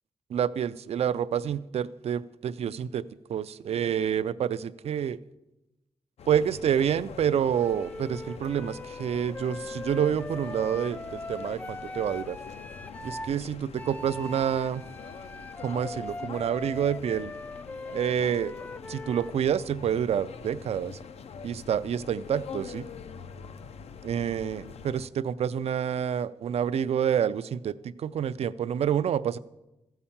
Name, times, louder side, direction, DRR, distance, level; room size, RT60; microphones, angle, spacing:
voice 1, 0.3-5.2 6.3-12.4 13.0-14.8 15.6-17.3 17.9-18.5 18.9-21.0 21.4-22.8 24.0-29.4, right 8 dB, 80° right, 15 dB, 0.4 m, -28 dB
sound 1, 6.2-25.1, left 6 dB, 80° left, 0.5 m, -44 dB
Wind instrument woodwind instrument, 7.5-13.3 13.8-19.4, left 2 dB, 15° left, 0.3 m, -40 dB
15.0 x 5.6 x 7.1 m, 0.99 s
wide cardioid pair, 110°, 11 cm